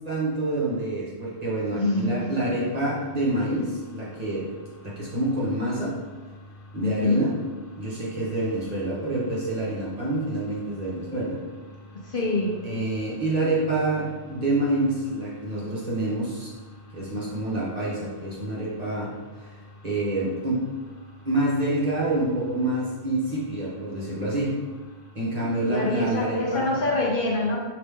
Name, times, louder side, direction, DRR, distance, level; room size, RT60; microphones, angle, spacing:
voice 1, 0.0-4.5 4.8-5.9 6.7-7.3 7.8-11.4 12.6-16.5 16.9-19.1 19.4-19.5 19.8-20.7 21.2-24.5 25.1-26.7, right 1 dB, 35° right, -7 dB, 1.2 m, -27 dB
voice 2, 1.7-2.2 6.8-7.2 12.1-12.6 25.7-27.6, left 2 dB, 55° left, -3 dB, 0.8 m, -25 dB
5.1 x 2.9 x 3.5 m, 1.3 s
omnidirectional pair, 1.2 m